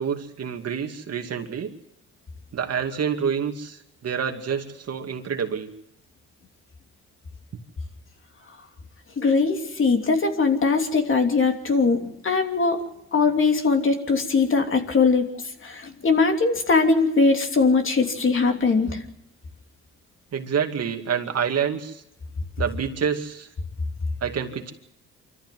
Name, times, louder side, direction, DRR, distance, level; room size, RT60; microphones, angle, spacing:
voice 1, 0.0-1.7 2.5-5.7 18.8-19.0 20.3-22.0 22.6-23.5 24.2-24.7, right 7 dB, 55° right, 5 dB, 2.4 m, -27 dB
voice 2, 9.2-12.8 13.1-15.3 15.6-19.0, left 4 dB, 40° left, 4 dB, 3.1 m, -21 dB
25.5 x 14.0 x 7.7 m, 0.85 s
cardioid pair, 90°, 30 cm